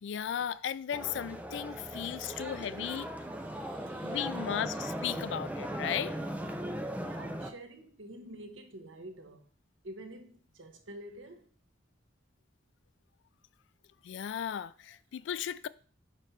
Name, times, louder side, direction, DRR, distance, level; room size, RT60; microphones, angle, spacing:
voice 1, 0.0-3.1 4.0-6.1 14.0-15.7, left 9 dB, 70° left, 0.3 m, -36 dB
sound 1, 0.9-7.5, equal, 10° right, 0.5 m, -38 dB
voice 2, 3.5-4.3 7.0-9.5 9.8-11.5, right 1 dB, 85° right, 1.0 m, -48 dB
5.1 x 4.2 x 5.7 m
head